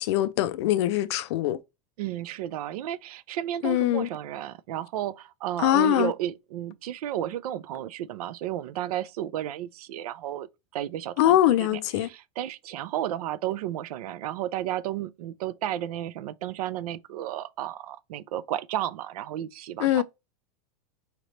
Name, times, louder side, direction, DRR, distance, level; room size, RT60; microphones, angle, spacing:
voice 1, 0.0-1.6 3.6-4.1 5.6-6.1 11.2-12.1 19.8-20.0, left 13 dB, 50° left, 0.4 m, -22 dB
voice 2, 2.0-20.0, right 12 dB, 85° right, 0.5 m, -33 dB
5.1 x 2.9 x 3.2 m
supercardioid pair, 180°, 19 cm